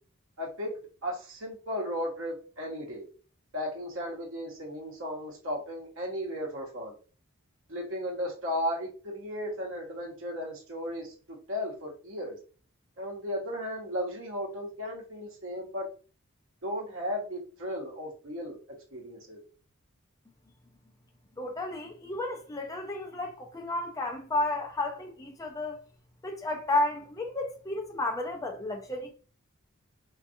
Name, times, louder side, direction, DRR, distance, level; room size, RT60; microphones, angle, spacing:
voice 1, 0.4-3.1 3.5-6.9 7.7-12.4 13.0-15.9 16.6-18.6 18.9-19.4, equal, 65° right, 0.8 m, -35 dB
voice 2, 21.4-25.8 26.2-29.1, left 2 dB, 15° left, 0.3 m, -32 dB
2.6 x 2.3 x 2.5 m
head